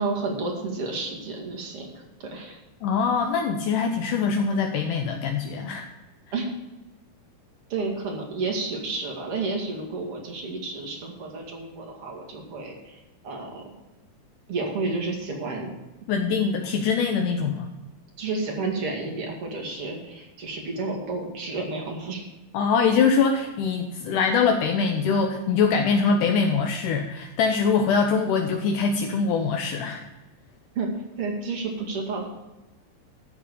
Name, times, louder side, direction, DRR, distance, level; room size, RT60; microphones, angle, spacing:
voice 1, 0.0-1.9 2.2-2.6 6.3-6.5 7.7-13.6 14.5-15.7 18.2-22.2 30.7-30.9 31.2-32.3, right 3 dB, 45° right, 0 dB, 2.9 m, -31 dB
voice 2, 2.8-5.9 16.1-17.7 22.5-30.0, left 5 dB, 80° left, 4 dB, 2.3 m, -23 dB
14.0 x 4.7 x 8.2 m, 1.1 s
omnidirectional pair, 3.7 m